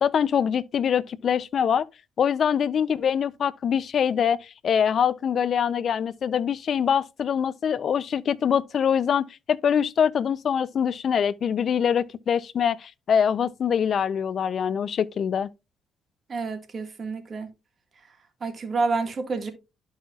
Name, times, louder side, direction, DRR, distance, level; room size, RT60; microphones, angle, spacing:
voice 1, 0.0-1.9 2.2-15.5, left 8 dB, 55° left, 0.5 m, -24 dB
voice 2, 16.3-17.5 18.4-19.5, right 4 dB, 40° right, 1.8 m, -28 dB
12.0 x 5.5 x 2.4 m
cardioid pair, 90°, 0 cm